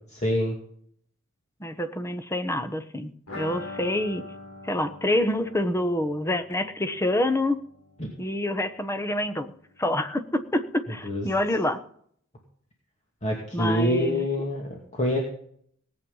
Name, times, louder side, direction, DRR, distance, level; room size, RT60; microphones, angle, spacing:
voice 1, 0.1-0.5 8.0-8.1 11.0-11.3 13.2-15.2, left 1 dB, 35° left, -1 dB, 2.5 m, -26 dB
voice 2, 1.6-4.2 4.6-7.6 8.2-9.5 9.8-11.8 13.5-14.2, left 1 dB, 15° left, 10 dB, 1.0 m, -27 dB
sound 1, 3.3-8.9 9.1-9.2 9.5-9.6, left 2 dB, 80° left, 4.0 m, -43 dB
18.5 x 8.8 x 5.6 m, 0.63 s
head